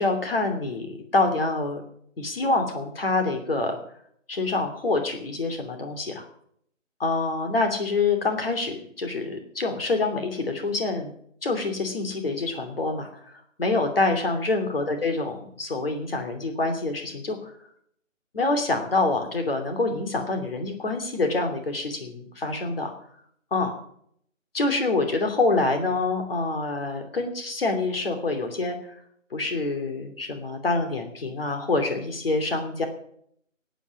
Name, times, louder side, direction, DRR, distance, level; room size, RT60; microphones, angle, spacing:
voice 1, 0.0-1.8 2.2-3.8 4.3-6.2 7.0-11.1 11.4-15.3 15.6-17.5 18.3-22.9 23.5-23.7 24.5-28.8 29.3-32.9, left 3 dB, 45° left, 5 dB, 2.9 m, -26 dB
16.5 x 9.3 x 7.2 m, 0.69 s
figure-of-eight pair, 170°, 39 cm